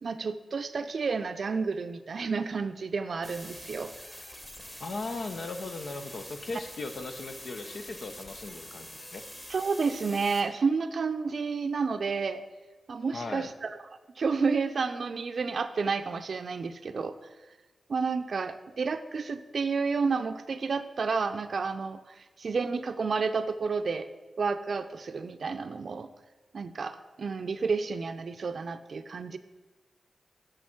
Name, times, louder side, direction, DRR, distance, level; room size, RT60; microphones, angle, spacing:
voice 1, 0.0-3.9 9.5-12.4 12.9-13.8 14.2-17.2 17.9-24.1 24.4-26.1 26.5-29.4, right 4 dB, 65° right, 10 dB, 0.5 m, -30 dB
sound 1, 3.2-10.4, equal, 20° left, 1.5 m, -45 dB
voice 2, 4.8-9.2 13.1-13.5, left 3 dB, 65° left, 7 dB, 0.7 m, -38 dB
6.5 x 6.2 x 5.9 m, 1.3 s
cardioid pair, 60°, 0 cm